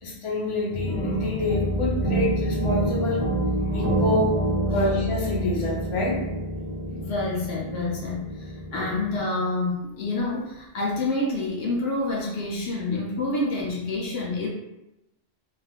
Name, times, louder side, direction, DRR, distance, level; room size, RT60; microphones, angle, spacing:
voice 1, 0.0-3.2 3.7-4.4 4.7-6.2, left 2 dB, 35° left, -5 dB, 0.7 m, -27 dB
sound 1, 0.7-9.2, right 1 dB, 25° right, 0.5 m, -27 dB
voice 2, 6.9-14.5, left 2 dB, 70° left, -3 dB, 0.8 m, -28 dB
3.2 x 2.3 x 2.3 m, 0.94 s
omnidirectional pair, 1.1 m